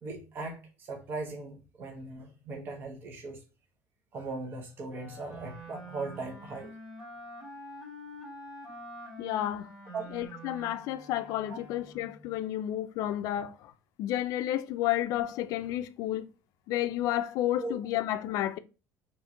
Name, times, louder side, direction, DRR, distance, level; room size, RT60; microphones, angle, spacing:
voice 1, 0.0-3.4 4.1-6.7 9.9-10.1 11.5-11.6 17.6-17.8, right 3 dB, 30° right, 0.9 m, -39 dB
Wind instrument woodwind instrument, 4.9-12.4, equal, 10° right, 1.7 m, -46 dB
voice 2, 9.2-9.7 10.1-13.7 14.0-16.3 16.7-18.6, left 13 dB, 60° left, 0.4 m, -31 dB
4.4 x 3.0 x 3.7 m
cardioid pair, 170°, 7 cm